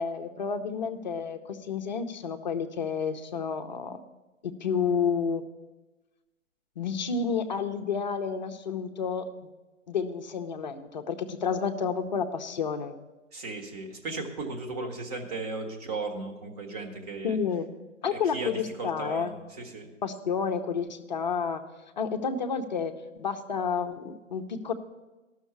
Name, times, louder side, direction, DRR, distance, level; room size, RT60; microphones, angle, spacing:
voice 1, 0.0-4.0 4.4-5.4 6.8-9.3 9.9-12.9 17.2-17.7 18.0-19.3 20.0-21.6 22.0-22.9 23.2-24.7, left 6 dB, 35° left, 6 dB, 0.6 m, -30 dB
voice 2, 13.3-17.4 18.1-18.5 18.8-19.9, right 3 dB, 30° right, 3 dB, 1.4 m, -36 dB
13.5 x 6.4 x 7.0 m, 1.1 s
hypercardioid pair, 150°, 40 cm